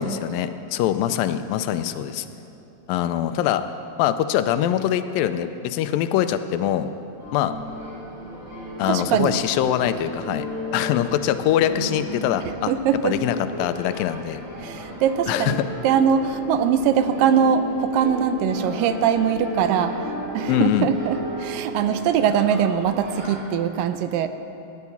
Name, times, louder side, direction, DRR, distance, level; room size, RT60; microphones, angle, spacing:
voice 1, 0.0-2.3 2.9-3.6 4.0-6.9 7.3-7.5 8.8-10.5 10.7-12.7 13.0-14.4 15.3-15.6 20.5-20.9, left 11 dB, 90° left, 11 dB, 2.4 m, -23 dB
sound 1, 7.2-23.3, equal, 40° right, 5.6 m, -34 dB
voice 2, 8.9-9.4 12.7-13.2 14.6-15.6 15.8-24.3, right 8 dB, 85° right, 10 dB, 2.3 m, -22 dB
16.5 x 11.0 x 7.0 m, 2.9 s
omnidirectional pair, 3.9 m